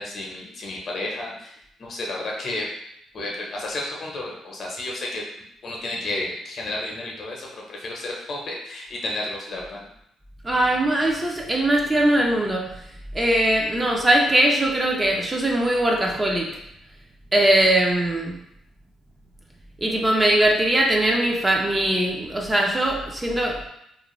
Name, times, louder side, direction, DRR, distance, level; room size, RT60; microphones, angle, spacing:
voice 1, 0.0-2.7 3.1-5.2 5.6-9.9, left 2 dB, 55° left, -2 dB, 0.7 m, -32 dB
voice 2, 10.4-12.7 13.1-16.5 17.3-18.4 19.8-23.6, right 1 dB, 20° right, -1 dB, 0.5 m, -21 dB
2.5 x 2.1 x 3.0 m, 0.76 s
cardioid pair, 90°, 0 cm